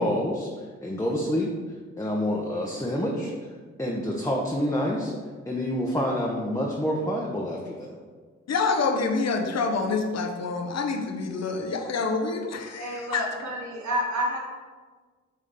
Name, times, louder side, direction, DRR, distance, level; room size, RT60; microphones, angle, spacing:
voice 1, 0.0-1.5 2.0-3.5 3.8-5.1 5.5-8.0, equal, 10° left, -3 dB, 1.0 m, -27 dB
voice 2, 8.5-13.2, left 4 dB, 50° left, 4 dB, 0.9 m, -27 dB
voice 3, 12.7-14.4, equal, 60° right, -1 dB, 1.6 m, -29 dB
6.6 x 3.7 x 3.8 m, 1.4 s
supercardioid pair, 45°, 33 cm